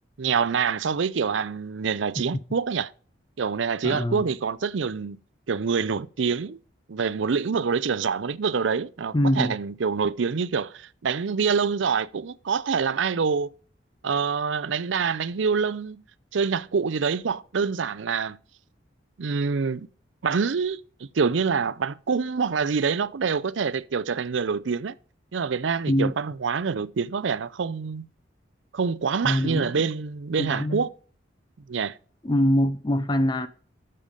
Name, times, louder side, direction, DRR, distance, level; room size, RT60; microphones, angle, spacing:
voice 1, 0.2-2.9 3.4-5.2 5.5-6.6 6.9-13.5 14.0-16.0 16.3-18.4 19.2-19.9 20.2-20.8 21.1-24.9 25.3-28.0 28.7-30.9 31.7-32.0, right 5 dB, 75° right, 0.5 m, -26 dB
voice 2, 3.8-4.3 9.1-9.5 25.9-26.1 29.2-29.8 30.4-30.8 32.2-33.5, equal, 20° left, 0.5 m, -23 dB
12.5 x 6.7 x 5.2 m
head